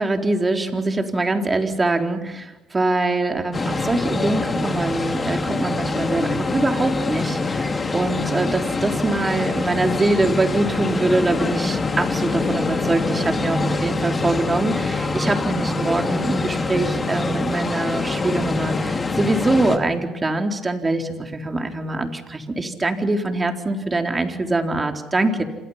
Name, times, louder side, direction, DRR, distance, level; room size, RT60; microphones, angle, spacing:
voice 1, 0.0-25.4, right 2 dB, 25° right, 4 dB, 4.1 m, -23 dB
sound 1, 3.5-19.8, left 3 dB, 30° left, 3.0 m, -24 dB
28.5 x 27.5 x 5.8 m, 1.0 s
supercardioid pair, 75°, 0 cm